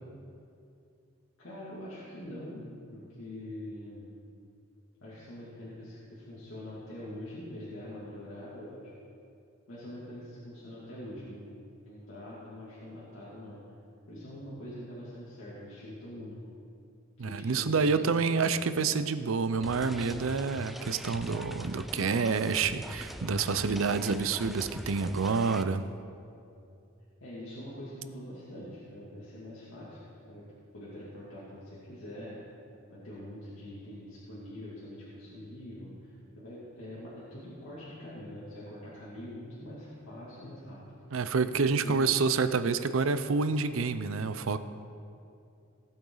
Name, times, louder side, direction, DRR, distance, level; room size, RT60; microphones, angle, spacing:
voice 1, 1.4-2.6 2.9-4.1 5.0-8.9 9.7-13.6 14.1-16.4 17.2-18.6 27.2-30.5 30.7-32.4 32.9-40.8 41.6-42.2, left 1 dB, 85° left, -9 dB, 2.6 m, -44 dB
voice 2, 17.2-25.9 41.1-44.6, right 4 dB, 80° right, 12 dB, 0.5 m, -28 dB
sound 1, 19.6-25.6, equal, ahead, 0.4 m, -41 dB
18.0 x 8.7 x 4.0 m, 2.5 s
head